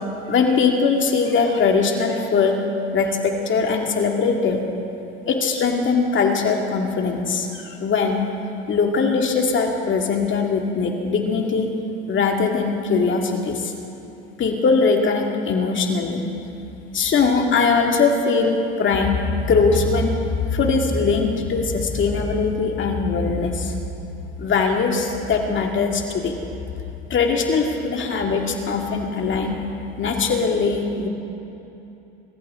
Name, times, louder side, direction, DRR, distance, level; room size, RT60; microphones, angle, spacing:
voice 1, 0.3-2.6 2.9-4.6 5.3-8.2 8.7-11.7 12.1-13.7 14.4-16.3 16.9-23.8 24.4-26.3 27.1-29.6 30.0-31.1, left 4 dB, 40° left, 2 dB, 2.3 m, -21 dB
24.0 x 14.0 x 3.8 m, 3.0 s
supercardioid pair, 90°, 29 cm